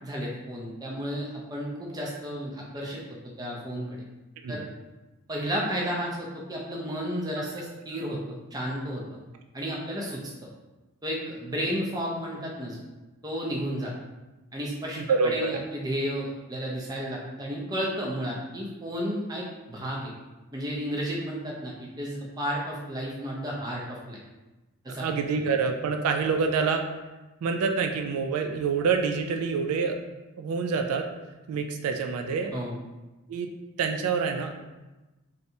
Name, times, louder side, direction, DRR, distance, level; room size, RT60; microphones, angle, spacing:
voice 1, 0.0-3.0 3.4-4.0 4.5-4.6 5.3-9.0 9.5-10.2 11.0-12.8 13.2-13.9 14.5-15.0 15.2-20.1 20.5-24.2 24.8-25.0 32.5-32.8, equal, 15° right, -3 dB, 0.4 m, -32 dB
voice 2, 15.0-15.6 25.0-26.8 27.4-30.0 30.4-31.1 31.5-32.5 33.3-33.5 33.8-34.6, right 5 dB, 80° right, 5 dB, 0.3 m, -26 dB
3.2 x 2.7 x 2.7 m, 1.1 s
head